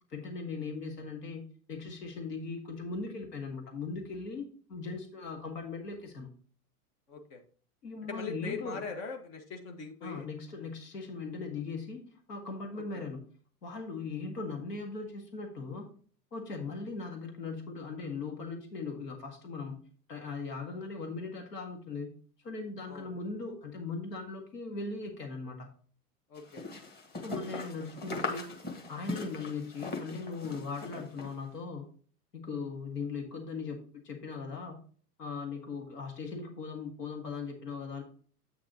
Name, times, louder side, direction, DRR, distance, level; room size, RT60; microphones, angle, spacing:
voice 1, 0.1-1.4 1.7-6.3 7.8-8.8 10.0-12.0 12.3-13.2 13.6-15.9 16.3-19.8 20.1-22.2 22.4-25.7 27.2-28.5 28.9-31.9 32.3-34.8 35.2-38.0, left 4 dB, 85° left, 3 dB, 1.9 m, -39 dB
voice 2, 7.1-7.4 8.0-10.3 12.9-13.0 22.8-23.1 26.3-26.6, left 5 dB, 60° left, 4 dB, 1.7 m, -41 dB
sound 1, 26.4-31.4, left 3 dB, 20° left, 1.8 m, -39 dB
8.4 x 6.2 x 3.0 m, 0.43 s
hypercardioid pair, 110°, 47 cm